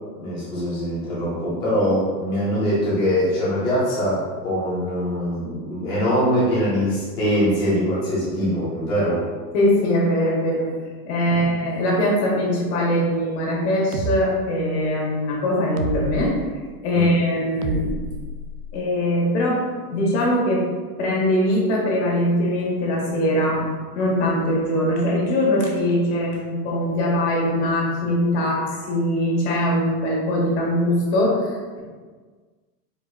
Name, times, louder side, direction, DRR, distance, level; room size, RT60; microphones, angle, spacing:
voice 1, 0.2-9.2 11.2-11.4 16.9-17.1, equal, 10° left, -9 dB, 0.4 m, -23 dB
voice 2, 9.5-10.7 11.0-16.4 16.8-17.9 18.7-20.7 21.0-31.8, left 1 dB, 45° left, -3 dB, 1.3 m, -22 dB
sound 1, 13.9-14.2 15.8-16.3 17.6-18.8, right 3 dB, 70° right, 0.6 m, -28 dB
4.6 x 3.8 x 2.4 m, 1.5 s
supercardioid pair, 155°, 48 cm